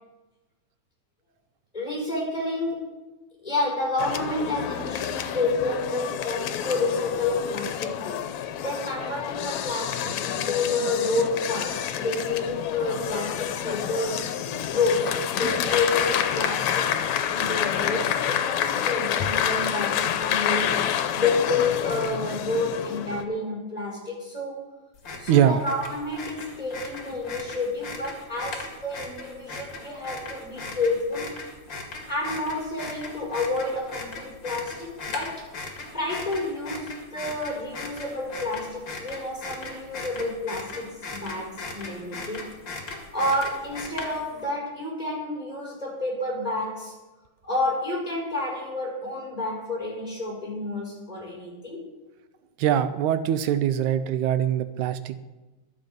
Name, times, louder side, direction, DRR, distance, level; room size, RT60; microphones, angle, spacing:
voice 1, 1.7-3.0 3.4-14.3 14.7-16.9 17.3-24.6 25.2-31.4 32.1-42.5 43.1-46.9 47.4-51.9, left 2 dB, 10° left, -3 dB, 4.8 m, -29 dB
sound 1, 4.0-23.2, left 9 dB, 75° left, 2.1 m, -28 dB
sound 2, 25.0-44.4, left 3 dB, 40° left, 2.8 m, -38 dB
voice 2, 25.3-25.6 52.6-55.2, right 10 dB, 85° right, 12 dB, 2.1 m, -22 dB
22.5 x 7.8 x 5.3 m, 1.1 s
omnidirectional pair, 3.4 m